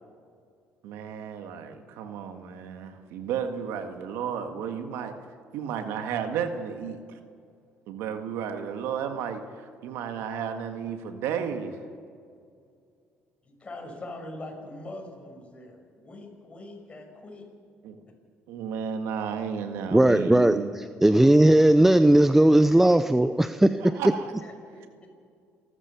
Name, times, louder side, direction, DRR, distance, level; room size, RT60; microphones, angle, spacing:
voice 1, 0.8-5.1 5.5-7.2 7.9-11.8 17.8-18.0 18.5-20.7 23.8-24.3, right 7 dB, 85° right, 7 dB, 1.7 m, -33 dB
voice 2, 13.5-17.4 22.5-22.6 23.4-23.8 24.4-25.1, left 2 dB, 25° left, 1 dB, 6.1 m, -43 dB
voice 3, 19.9-23.7, right 1 dB, 5° right, 11 dB, 0.6 m, -18 dB
28.5 x 13.5 x 7.0 m, 2.3 s
cardioid pair, 100°, 4 cm